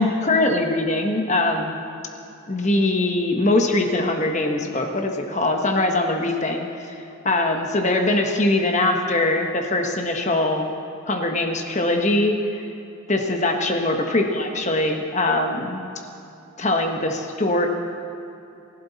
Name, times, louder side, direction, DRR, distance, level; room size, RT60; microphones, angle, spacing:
voice 1, 0.0-1.8 2.5-7.0 7.2-10.7 11.1-12.6 13.1-15.9 16.6-17.7, left 2 dB, 35° left, 3 dB, 1.2 m, -22 dB
28.5 x 12.0 x 4.1 m, 2.7 s
head